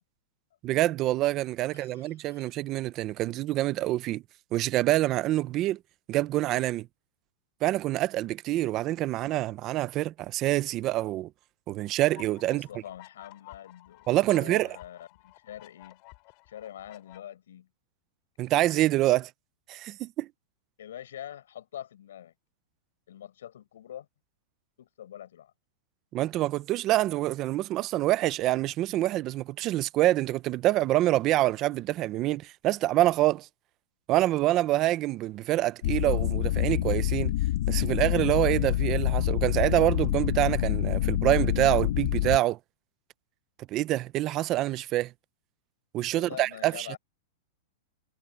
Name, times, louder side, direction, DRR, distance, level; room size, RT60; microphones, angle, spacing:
voice 1, 0.6-4.2 4.5-5.8 6.1-6.9 7.6-11.3 11.7-12.7 14.1-14.8 18.4-19.3 19.7-20.3 26.1-33.5 34.1-37.3 37.7-42.6 43.7-45.1 45.9-47.0, right 15 dB, 25° right, 0.5 m, -26 dB
voice 2, 1.7-2.4 12.5-16.0 16.5-17.7 20.8-22.3 23.1-24.1 24.8-25.5 46.1-47.0, left 11 dB, 85° left, 6.4 m, -44 dB
sound 1, 12.0-17.2, left 29 dB, 30° left, 6.0 m, -53 dB
sound 2, 35.8-42.4, left 14 dB, 55° left, 1.6 m, -27 dB
supercardioid pair, 180°, 0 cm